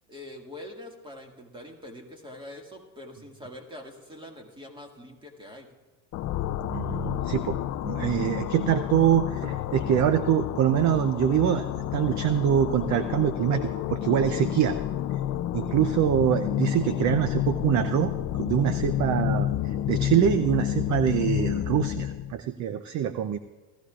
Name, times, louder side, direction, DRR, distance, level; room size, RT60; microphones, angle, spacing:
voice 1, 0.1-5.7, left 1 dB, 10° right, 2 dB, 2.0 m, -44 dB
sound 1, 6.1-22.3, left 11 dB, 35° left, 0.5 m, -30 dB
voice 2, 6.7-7.6 7.8-14.8 15.5-23.4, right 10 dB, 35° right, 12 dB, 0.6 m, -24 dB
18.5 x 14.5 x 2.4 m, 1.3 s
supercardioid pair, 120°, 49 cm